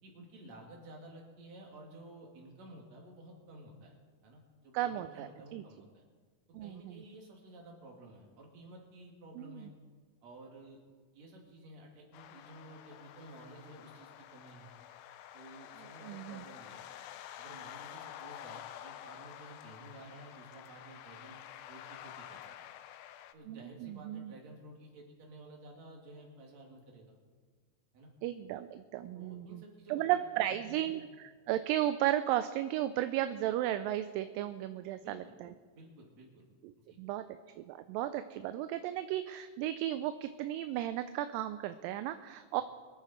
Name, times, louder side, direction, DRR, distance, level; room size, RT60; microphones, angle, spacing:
voice 1, 0.0-6.0 6.6-9.7 10.2-10.8 11.1-14.7 15.3-16.9 17.4-21.4 21.7-22.5 23.3-27.2 27.9-28.1 29.1-31.0 35.0-35.4 35.7-36.4 36.8-37.0, right 1 dB, 50° right, 0 dB, 3.4 m, -53 dB
voice 2, 4.7-5.6 6.5-7.0 9.4-9.7 16.0-16.4 23.5-24.3 28.2-29.6 29.9-35.5 37.0-42.6, right 13 dB, 80° right, 11 dB, 2.2 m, -35 dB
sound 1, 12.1-23.3, left 11 dB, 85° left, 2.5 m, -49 dB
24.0 x 9.1 x 4.3 m, 1.5 s
omnidirectional pair, 4.2 m